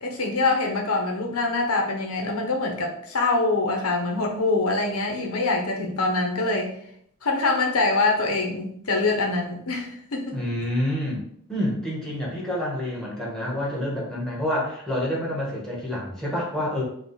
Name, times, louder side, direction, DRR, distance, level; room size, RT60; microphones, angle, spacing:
voice 1, 0.0-6.7 7.2-10.4, left 3 dB, 85° left, 1 dB, 1.0 m, -24 dB
voice 2, 10.3-11.2 11.5-16.8, left 1 dB, 5° left, -4 dB, 1.4 m, -28 dB
4.8 x 2.4 x 4.0 m, 0.67 s
head